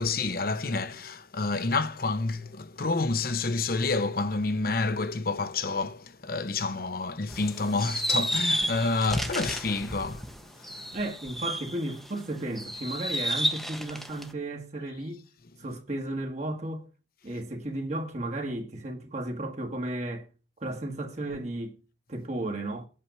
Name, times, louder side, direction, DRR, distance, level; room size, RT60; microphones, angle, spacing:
voice 1, 0.0-10.3 10.6-10.9, left 3 dB, 55° left, 0.9 m, -29 dB
sound 1, 7.3-12.1 12.5-14.3, equal, ahead, 0.9 m, -31 dB
voice 2, 10.9-15.2 15.6-16.9 17.2-20.3 20.6-21.8 22.1-22.9, right 1 dB, 40° right, 1.5 m, -34 dB
8.6 x 5.9 x 8.0 m
head